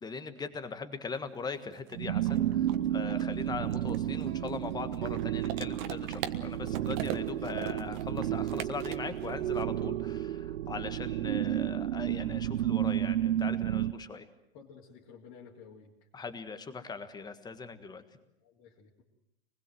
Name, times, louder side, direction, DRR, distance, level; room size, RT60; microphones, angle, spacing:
voice 1, 0.0-14.3 16.1-18.0, left 5 dB, 10° left, 10 dB, 1.5 m, -40 dB
sound 1, 1.1-1.2 1.4-9.6, right 11 dB, 45° right, 1.6 m, -40 dB
sound 2, 1.9-13.9, right 12 dB, 85° right, 0.9 m, -32 dB
sound 3, 3.9-9.4, right 11 dB, 65° right, 1.8 m, -45 dB
voice 2, 14.5-15.9 18.4-19.0, left 6 dB, 40° left, -4 dB, 3.2 m, -53 dB
25.5 x 20.5 x 7.8 m, 0.81 s
supercardioid pair, 150°, 34 cm